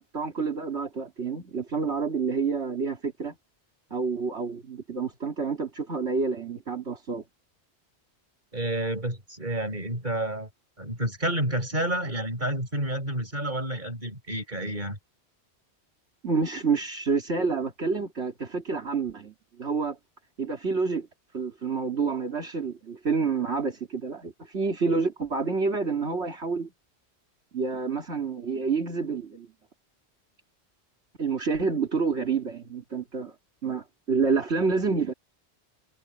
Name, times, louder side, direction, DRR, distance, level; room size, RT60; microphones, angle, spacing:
voice 1, 0.0-3.4 3.9-7.2 16.2-20.0 20.4-21.1 21.3-26.7 27.5-29.5 31.2-33.3 33.6-35.1, right 4 dB, 80° right, 2.9 m, -28 dB
voice 2, 8.5-10.5 10.8-15.0, right 1 dB, 45° right, 5.7 m, -29 dB
omnidirectional pair, 1.1 m